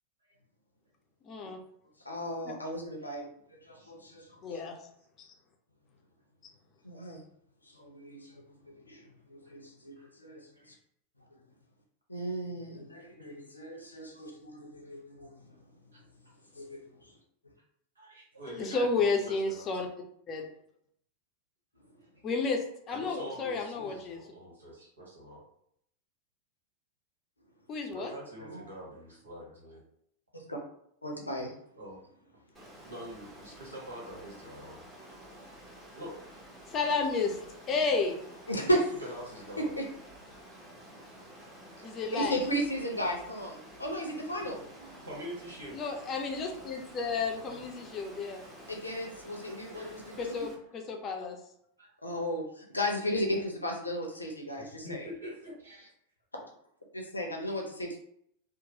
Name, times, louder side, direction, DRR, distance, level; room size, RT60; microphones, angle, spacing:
voice 1, 1.3-1.6 4.4-4.8 5.2-5.3 18.5-19.9 20.3-20.4 22.2-24.2 27.7-28.1 36.7-38.2 41.8-42.4 45.7-48.4 50.2-51.4, left 4 dB, 30° left, 3 dB, 0.5 m, -32 dB
voice 2, 2.1-3.3 3.7-4.2 6.8-7.2 7.8-8.4 8.9-9.0 9.3-9.9 10.2-10.4 12.1-15.3 16.5-16.9 28.4-28.7 30.3-30.6 31.0-31.5 38.5-38.8 39.6-39.7 42.1-44.6 48.7-50.4 52.0-55.1 56.9-58.0, equal, 80° left, 1 dB, 0.6 m, -34 dB
voice 3, 18.0-19.9 22.9-25.4 27.9-29.8 31.8-32.0 32.8-34.8 36.0-36.2 38.5-39.7 41.6-42.0 44.4-44.5 45.0-45.8 49.7-50.0 51.1-51.3 51.8-51.9 54.6-55.9, right 1 dB, 75° right, -4 dB, 1.1 m, -45 dB
Water, 32.5-50.5, right 1 dB, 10° right, 0.9 m, -51 dB
2.9 x 2.0 x 2.8 m, 0.71 s
figure-of-eight pair, 90°, 0 cm